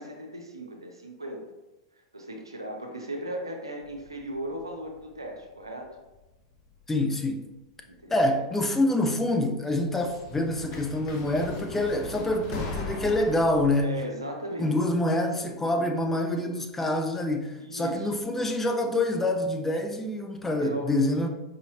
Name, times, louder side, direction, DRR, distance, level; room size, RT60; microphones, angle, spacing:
voice 1, 0.0-1.4 2.1-5.9 7.9-8.5 13.8-14.8 17.6-18.2 20.6-20.9, right 1 dB, 90° right, 0.7 m, -37 dB
sound 1, 3.8-5.9 6.1-6.8 7.9-8.0 9.7-13.8, left 3 dB, 45° left, 0.8 m, -39 dB
voice 2, 6.9-7.5 8.1-14.0 14.6-21.3, left 1 dB, 10° left, 0.5 m, -26 dB
4.9 x 2.8 x 2.8 m
figure-of-eight pair, 95°, 2 cm